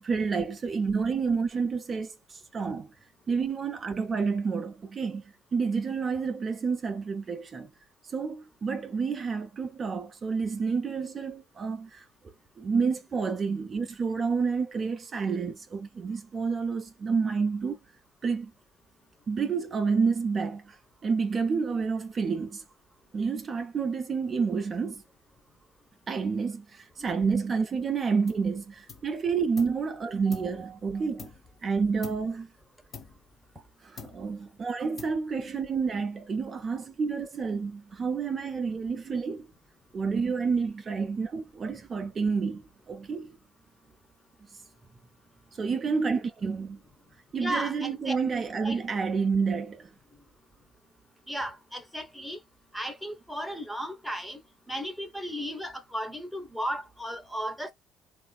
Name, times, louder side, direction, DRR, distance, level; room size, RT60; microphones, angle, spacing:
voice 1, 0.0-2.9 3.3-5.2 5.5-7.7 8.1-17.8 18.2-18.5 19.3-20.8 21.0-22.6 23.1-25.0 26.1-31.3 31.6-32.5 33.6-39.5 39.9-43.4 45.5-46.8 47.3-49.9, right 5 dB, 40° right, 0.4 m, -29 dB
sound 1, 28.3-28.6 28.9-29.9 30.3-31.6 32.0-32.4 32.9-33.7 34.0-34.5 35.0-35.5, left 6 dB, 45° left, 1.2 m, -47 dB
voice 2, 47.4-48.2 48.6-48.8 51.3-52.4 52.7-54.4 54.7-57.7, equal, ahead, 0.8 m, -35 dB
2.8 x 2.5 x 2.3 m
hypercardioid pair, 60°, 0 cm